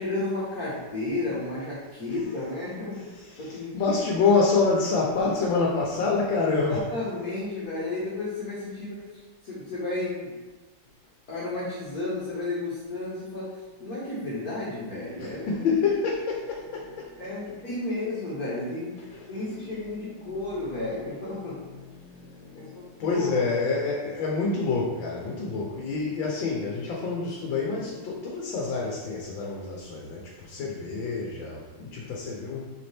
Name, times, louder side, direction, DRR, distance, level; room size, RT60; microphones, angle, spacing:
voice 1, 0.0-3.0 3.4-4.0 6.7-10.3 11.3-15.6 17.2-21.6 22.6-23.5, left 2 dB, 50° left, -8 dB, 2.0 m, -33 dB
voice 2, 3.3-6.8 15.2-17.3 19.0-19.3 20.2-20.3 21.5-32.6, left 4 dB, 75° left, -2 dB, 1.8 m, -27 dB
7.2 x 5.9 x 3.5 m, 1.2 s
omnidirectional pair, 2.1 m